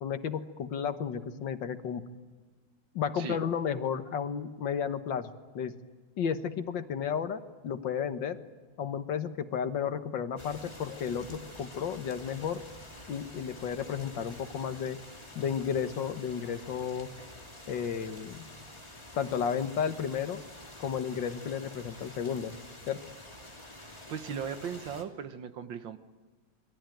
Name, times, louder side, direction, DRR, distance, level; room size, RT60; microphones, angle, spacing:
voice 1, 0.0-2.0 2.9-5.7 6.2-8.4 8.8-12.6 13.1-15.0 15.4-17.1 17.7-18.4 19.2-20.4 20.8-22.6 22.9-23.0, left 7 dB, 75° left, 9 dB, 1.9 m, -33 dB
sound 1, 10.4-25.0, left 1 dB, 15° left, 2.9 m, -48 dB
voice 2, 23.7-26.0, right 7 dB, 80° right, 10 dB, 2.0 m, -38 dB
27.0 x 22.0 x 9.2 m, 1.4 s
omnidirectional pair, 2.0 m